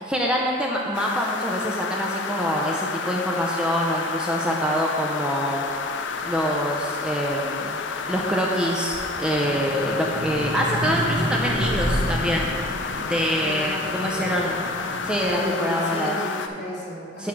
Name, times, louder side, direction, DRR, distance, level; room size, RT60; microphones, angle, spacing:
voice 1, 0.0-5.6 6.2-7.8 8.1-12.5 13.0-14.6 15.0-16.2 17.2-17.3, equal, 5° right, -2 dB, 0.4 m, -25 dB
sound 1, 0.9-16.5, left 5 dB, 75° left, 0.4 m, -31 dB
sound 2, 5.8-8.4 8.8-15.4, equal, 60° right, 1.0 m, -30 dB
voice 2, 13.4-14.6 15.4-17.3, equal, 60° left, -5 dB, 1.6 m, -34 dB
9.1 x 3.1 x 6.1 m, 2.5 s
head